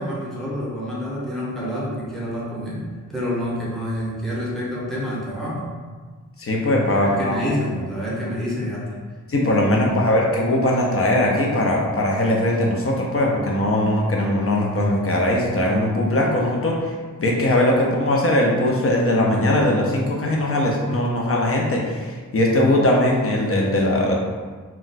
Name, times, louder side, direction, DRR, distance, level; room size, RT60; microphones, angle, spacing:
voice 1, 0.0-5.7 6.9-9.0 9.9-10.1, equal, ahead, -7 dB, 0.7 m, -28 dB
voice 2, 6.4-7.4 9.3-16.9 17.2-24.1, left 1 dB, 45° left, -2 dB, 0.5 m, -20 dB
2.2 x 2.2 x 3.9 m, 1.5 s
wide cardioid pair, 130°, 32 cm